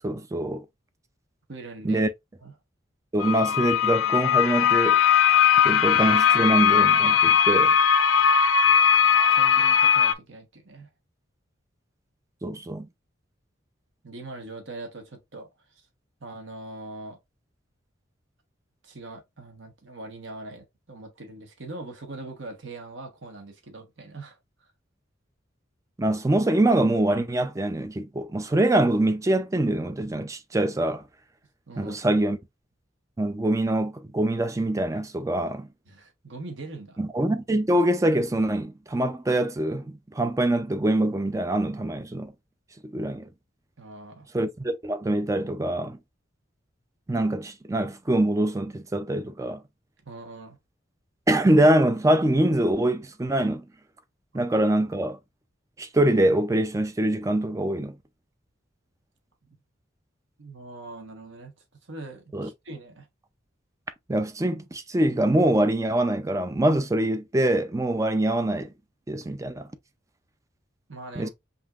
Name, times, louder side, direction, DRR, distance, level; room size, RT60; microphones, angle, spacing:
voice 1, 0.0-0.6 1.8-2.1 3.1-5.0 5.6-7.8 12.4-12.9 26.0-31.0 31.8-32.4 33.2-35.7 37.0-42.3 42.8-43.3 44.3-46.0 47.1-49.6 51.3-53.6 54.3-55.2 55.8-58.0 62.3-62.5 64.1-68.7 69.1-69.7 71.2-71.3, right 1 dB, 15° right, 0.4 m, -24 dB
voice 2, 1.5-2.1 2.4-2.5 9.3-10.9 14.0-15.5 16.2-17.2 18.8-24.4 31.7-32.0 35.9-37.0 43.8-44.3 50.1-50.6 59.5-59.6 60.4-61.5 61.9-63.1 70.9-71.3, right 2 dB, 70° right, 1.2 m, -41 dB
sound 1, 3.2-10.1, left 8 dB, 85° left, 0.4 m, -19 dB
5.4 x 2.8 x 2.4 m
head